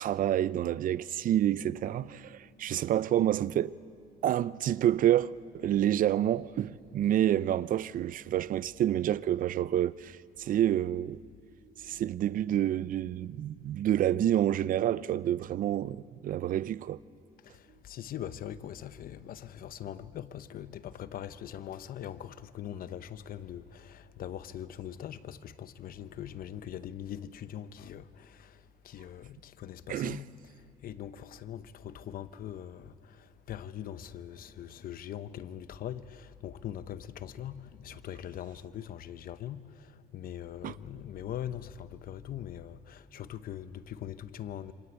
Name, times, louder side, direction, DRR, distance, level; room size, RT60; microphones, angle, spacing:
voice 1, 0.0-3.7 4.2-11.2 11.8-17.0 29.9-30.2 40.6-40.8, right 11 dB, 55° right, 0.6 m, -28 dB
voice 2, 17.4-30.3 30.8-44.7, left 10 dB, 60° left, 1.0 m, -42 dB
27.5 x 25.0 x 8.2 m
cardioid pair, 110°, 17 cm